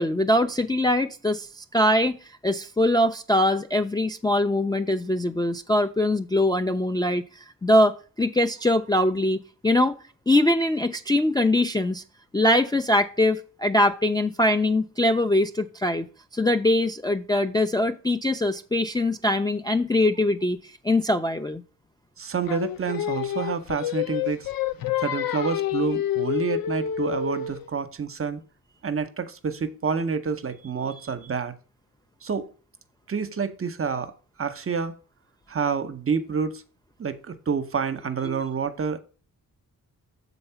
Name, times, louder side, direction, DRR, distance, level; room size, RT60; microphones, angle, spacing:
voice 1, 0.0-2.2 2.4-10.0 10.3-12.0 12.3-16.1 16.3-20.6 20.8-21.6 38.2-38.4, left 1 dB, 10° left, 0.3 m, -22 dB
voice 2, 22.2-24.5 25.0-28.4 28.8-31.5 32.2-32.5 33.1-34.1 34.4-35.0 35.5-36.6 37.0-39.0, right 6 dB, 40° right, 0.7 m, -28 dB
Singing, 22.5-27.7, left 10 dB, 75° left, 0.6 m, -28 dB
6.9 x 4.0 x 5.6 m
wide cardioid pair, 95°, 36 cm